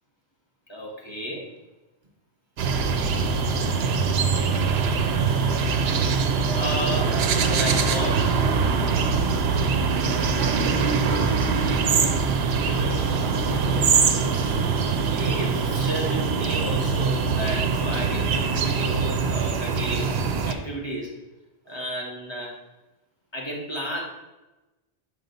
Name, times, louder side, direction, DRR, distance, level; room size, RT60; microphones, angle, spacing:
voice 1, 0.7-1.5 6.5-8.2 12.5-13.3 15.1-20.1 20.4-21.1 21.7-22.6 23.3-24.0, equal, 25° left, 1.6 m, -33 dB
sound 1, 2.6-20.5, right 5 dB, 80° right, 0.9 m, -23 dB
voice 2, 10.4-11.7 13.0-14.6 21.7-21.8, right 1 dB, 50° right, 1.2 m, -38 dB
6.6 x 4.9 x 4.0 m
omnidirectional pair, 1.0 m